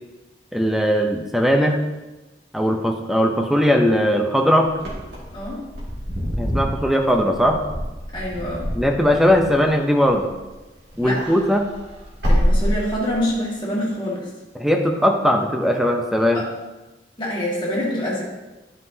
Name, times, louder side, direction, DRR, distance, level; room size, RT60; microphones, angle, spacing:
voice 1, 0.5-1.8 2.5-4.7 6.4-7.6 8.7-10.3 11.0-11.7 14.6-16.4, equal, ahead, 2 dB, 0.6 m, -19 dB
Wind / Car, 4.8-10.6 10.9-13.3, equal, 70° right, 2.1 m, -26 dB
voice 2, 5.3-5.6 8.1-8.8 11.0-11.3 12.3-14.3 16.3-16.5 17.2-18.2, left 1 dB, 25° left, -5 dB, 1.9 m, -26 dB
9.9 x 5.5 x 2.8 m, 1.1 s
head